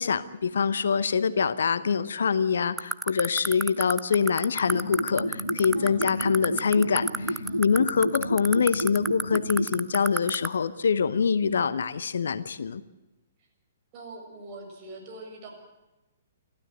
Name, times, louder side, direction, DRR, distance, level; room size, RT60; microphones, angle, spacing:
voice 1, 0.0-12.8, left 6 dB, 60° left, 16 dB, 0.9 m, -25 dB
sound 1, 2.8-10.5, right 3 dB, 5° right, 0.7 m, -26 dB
sound 2, 4.6-9.7, equal, 90° left, 2.6 m, -32 dB
voice 2, 5.7-6.1 7.4-7.8 13.9-15.5, right 2 dB, 30° right, 2 dB, 6.6 m, -42 dB
28.5 x 13.0 x 7.9 m, 1.1 s
figure-of-eight pair, 120°, 0 cm